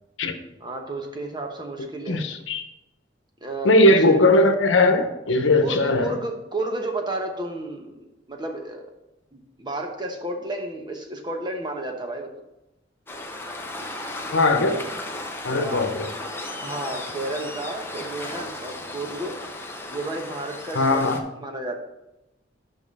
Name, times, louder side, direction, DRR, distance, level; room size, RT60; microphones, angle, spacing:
voice 1, 0.6-2.2 3.4-4.2 5.6-8.9 9.3-12.3 15.5-15.9 16.6-19.4 19.9-21.1 21.3-21.8, right 2 dB, 25° right, 0.9 m, -32 dB
voice 2, 2.1-2.6 3.6-6.2 14.3-14.8 15.4-16.1 20.7-21.2, left 2 dB, 90° left, 0.9 m, -19 dB
Waves surf, 13.1-21.2, left 2 dB, 15° left, 0.7 m, -35 dB
5.6 x 5.4 x 5.4 m
head